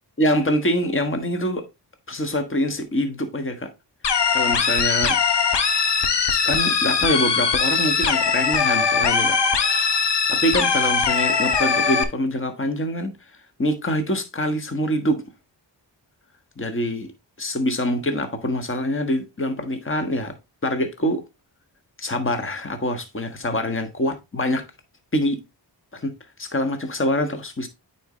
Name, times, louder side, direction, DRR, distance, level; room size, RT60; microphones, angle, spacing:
voice 1, 0.2-1.6 2.1-3.7 4.3-5.2 6.3-9.4 10.3-13.1 13.6-15.2 16.6-17.1 17.4-20.3 20.6-21.2 22.0-24.6 25.1-25.4 25.9-26.1 26.4-27.7, equal, 30° left, 1.4 m, -25 dB
sound 1, 4.0-12.0, left 5 dB, 65° left, 1.1 m, -21 dB
9.0 x 4.4 x 3.1 m
cardioid pair, 60°, 44 cm